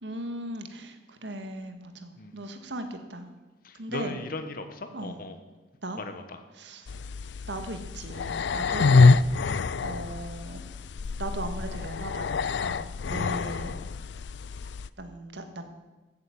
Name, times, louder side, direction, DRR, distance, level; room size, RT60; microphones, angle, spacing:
voice 1, 0.0-3.3 3.7-4.1 4.9-5.2 5.8-6.0 6.6-6.9 7.5-9.0 9.8-10.6 11.2-13.7 15.0-15.6, right 1 dB, 85° right, 7 dB, 1.8 m, -38 dB
voice 2, 3.6-5.4 6.0-6.4, left 2 dB, 55° left, 8 dB, 1.3 m, -38 dB
sound 1, 6.9-14.9, left 4 dB, 80° left, 0.5 m, -25 dB
14.0 x 9.2 x 8.6 m, 1.2 s
head